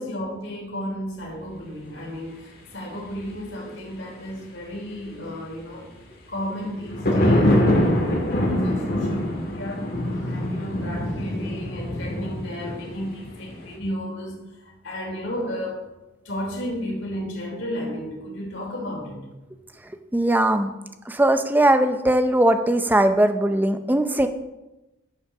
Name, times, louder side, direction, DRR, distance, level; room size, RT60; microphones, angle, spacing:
voice 1, 0.0-5.9 6.3-15.9 16.2-19.2, equal, 65° left, -2 dB, 3.0 m, -33 dB
sound 1, 6.7-13.8, left 1 dB, 50° left, 1.9 m, -24 dB
voice 2, 20.1-20.7 21.1-24.3, right 1 dB, 10° right, 8 dB, 0.5 m, -19 dB
9.6 x 5.8 x 5.8 m, 0.99 s
head